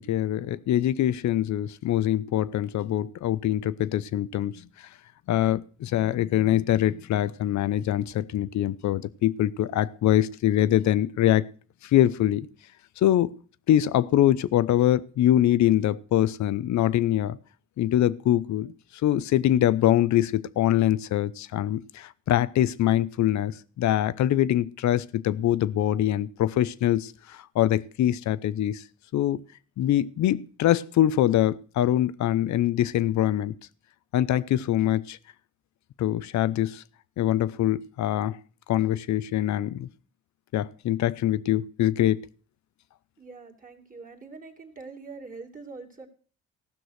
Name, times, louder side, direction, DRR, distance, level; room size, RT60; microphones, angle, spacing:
voice 1, 0.0-4.9 5.3-11.5 11.8-12.5 13.0-13.3 13.7-17.4 17.8-18.7 19.0-28.8 29.1-29.4 29.8-33.5 34.1-35.2 36.0-36.8 37.2-38.4 38.7-39.9 40.5-42.2, left 12 dB, 70° left, 0.7 m, -24 dB
voice 2, 43.2-46.1, right 4 dB, 25° right, 2.5 m, -43 dB
15.5 x 6.2 x 6.4 m
cardioid pair, 90°, 30 cm